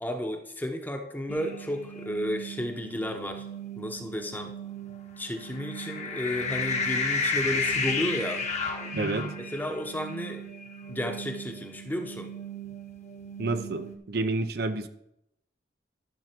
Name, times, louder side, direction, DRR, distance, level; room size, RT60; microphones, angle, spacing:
voice 1, 0.0-3.5 3.8-4.5 5.2-8.5 9.4-10.4 10.9-12.3, equal, 10° left, 5 dB, 0.9 m, -33 dB
sound 1, 1.3-14.0, left 2 dB, 40° left, 1.2 m, -34 dB
voice 2, 8.9-9.3 13.4-14.9, right 3 dB, 60° right, 8 dB, 0.7 m, -29 dB
12.5 x 6.2 x 4.5 m, 0.78 s
head